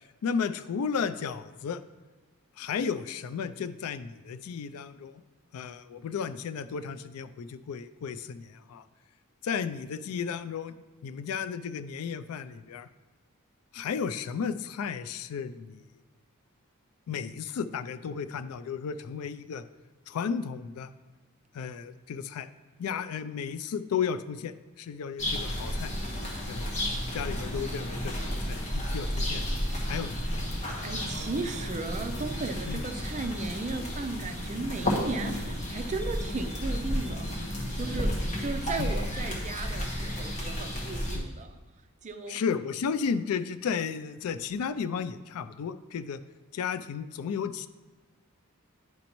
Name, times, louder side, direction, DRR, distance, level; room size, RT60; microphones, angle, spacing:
voice 1, 0.2-1.8 2.6-5.2 5.5-8.8 9.4-12.9 13.7-15.8 17.1-19.6 20.1-20.9 21.5-22.5 22.8-25.9 26.5-26.7 27.1-29.5 29.8-30.4 32.7-32.8 38.8-38.9 41.1-41.3 42.3-46.2 46.5-47.7, left 6 dB, 75° left, 12 dB, 0.3 m, -33 dB
sound 1, 25.2-41.2, equal, 30° left, 1.2 m, -32 dB
voice 2, 30.8-41.6 42.0-42.4, right 3 dB, 35° right, 7 dB, 0.5 m, -36 dB
9.4 x 5.2 x 3.0 m, 1.3 s
head